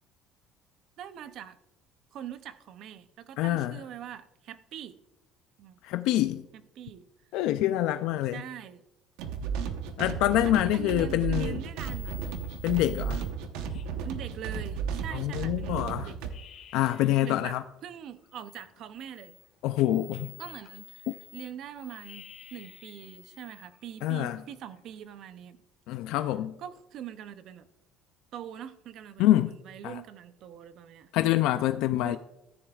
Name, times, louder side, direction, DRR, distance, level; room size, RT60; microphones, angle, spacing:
voice 1, 1.0-1.6 2.1-5.0 5.6-5.8 6.5-7.0 8.3-8.8 10.5-12.2 14.0-16.2 17.2-17.6 17.8-19.4 20.4-21.1 21.3-22.2 22.5-25.6 26.6-27.7 28.3-31.1 32.0-32.2, right 9 dB, 45° right, 0.5 m, -43 dB
voice 2, 3.4-3.7 5.8-6.4 7.3-8.4 10.0-11.6 12.6-13.2 15.1-16.1 16.7-17.6 19.6-20.3 24.0-24.4 25.9-26.5 29.2-29.5 29.8-30.0 31.1-32.2, left 14 dB, 65° left, 0.3 m, -26 dB
sound 1, 9.2-16.3, right 6 dB, 85° right, 0.9 m, -34 dB
sound 2, 11.1-11.5 11.7-15.3 15.7-15.8 16.1-17.4 17.8-25.2, left 10 dB, 45° left, 1.6 m, -53 dB
14.5 x 10.0 x 2.4 m
cardioid pair, 180°, 0 cm